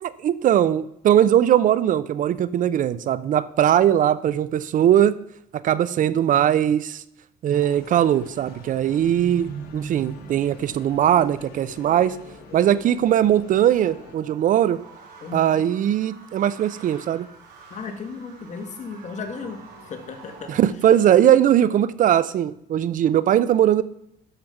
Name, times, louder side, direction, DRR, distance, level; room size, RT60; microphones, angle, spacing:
voice 1, 0.0-5.1 5.6-7.0 7.4-12.2 12.5-14.8 15.3-17.3 20.5-23.8, right 10 dB, 50° right, 17 dB, 0.5 m, -20 dB
sound 1, 7.5-14.2, left 6 dB, 65° left, 1.8 m, -47 dB
sound 2, 8.9-20.7, right 5 dB, 75° right, 3.6 m, -44 dB
voice 2, 15.2-15.6 17.7-19.6 19.9-20.5, left 4 dB, 45° left, 5 dB, 1.8 m, -35 dB
12.0 x 5.1 x 5.9 m, 0.76 s
cardioid pair, 110°, 17 cm